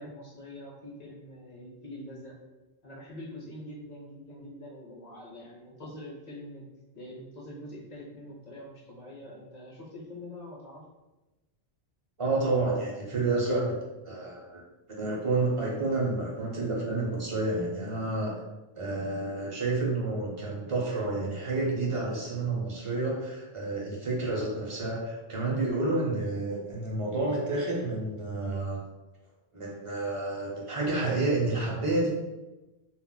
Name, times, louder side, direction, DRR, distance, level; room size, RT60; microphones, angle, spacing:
voice 1, 0.0-2.4 2.8-6.7 6.9-10.8, left 1 dB, 45° left, -3 dB, 0.7 m, -44 dB
voice 2, 12.2-13.7 14.0-14.6 14.9-18.4 18.7-28.8 29.5-32.1, right 2 dB, 35° right, -4 dB, 0.6 m, -29 dB
2.2 x 2.0 x 3.7 m, 1.1 s
omnidirectional pair, 1.0 m